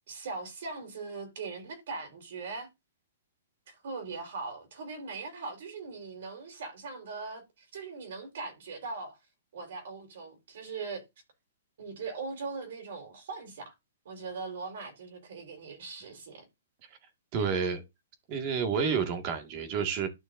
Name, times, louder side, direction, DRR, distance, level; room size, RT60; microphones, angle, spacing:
voice 1, 0.1-2.7 3.7-9.2 9.5-11.0 11.8-13.7 14.0-16.5 17.3-17.6, right 4 dB, 65° right, 4.5 m, -40 dB
voice 2, 17.3-17.8 18.3-20.1, right 6 dB, 35° right, 2.1 m, -29 dB
12.0 x 6.2 x 2.7 m
hypercardioid pair, 150°, 0 cm